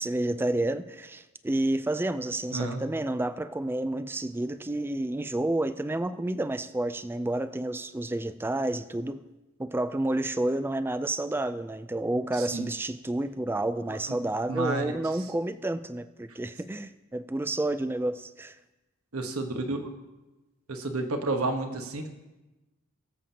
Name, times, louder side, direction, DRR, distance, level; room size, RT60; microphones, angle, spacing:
voice 1, 0.0-9.2 9.6-18.6, right 1 dB, 10° right, 11 dB, 0.3 m, -30 dB
voice 2, 2.5-2.8 12.4-12.7 13.9-14.2 14.5-14.9 19.1-19.9 20.7-22.1, right 2 dB, 85° right, 5 dB, 1.2 m, -31 dB
22.0 x 7.5 x 2.8 m, 1.1 s
head